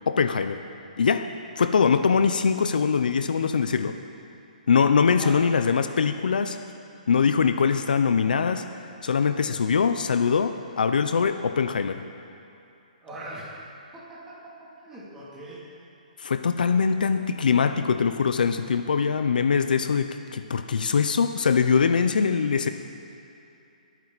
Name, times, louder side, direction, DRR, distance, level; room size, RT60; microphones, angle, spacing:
voice 1, 0.1-0.6 1.0-1.2 1.6-4.0 4.7-6.6 7.1-8.6 9.0-12.0 16.2-22.7, left 6 dB, 80° left, 9 dB, 0.8 m, -22 dB
voice 2, 5.2-5.5 13.0-13.5 13.9-15.7, right 1 dB, 10° right, -8 dB, 2.9 m, -41 dB
24.0 x 9.3 x 4.2 m, 2.8 s
hypercardioid pair, 160°, 5 cm